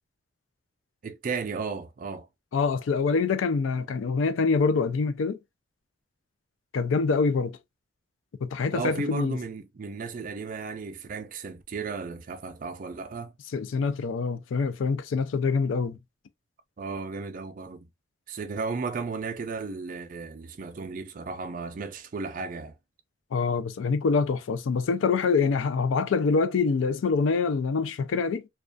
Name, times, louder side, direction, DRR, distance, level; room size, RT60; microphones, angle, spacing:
voice 1, 1.0-2.3 8.7-13.3 16.8-17.9 18.3-22.8, right 4 dB, 45° right, 0.4 m, -34 dB
voice 2, 2.5-5.4 6.7-7.6 8.4-9.4 13.5-16.0 23.3-28.5, left 4 dB, 90° left, 0.4 m, -25 dB
2.3 x 2.2 x 2.4 m
head